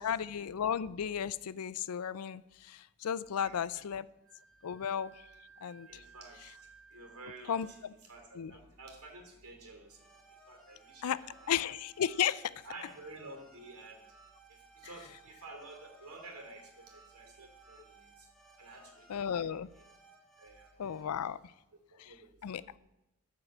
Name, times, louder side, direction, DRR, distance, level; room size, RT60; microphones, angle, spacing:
voice 1, 0.0-4.0 4.6-5.2 5.6-5.9 7.5-7.7 8.4-8.5 11.0-11.2 11.5-12.5 19.1-19.7 20.8-21.4 22.0-22.1 22.4-22.6, left 8 dB, 90° left, 18 dB, 0.4 m, -34 dB
voice 2, 3.4-3.8 5.9-6.5 6.9-10.0 10.5-11.6 12.6-14.0 14.5-18.3 18.6-19.8 20.4-21.1 21.9-22.7, right 2 dB, 90° right, 3 dB, 2.8 m, -51 dB
Wind instrument woodwind instrument, 4.2-7.9, right 5 dB, 65° right, 1.8 m, -59 dB
sound 1, 9.9-21.0, right 3 dB, ahead, 1.9 m, -60 dB
13.5 x 4.7 x 7.6 m, 0.93 s
head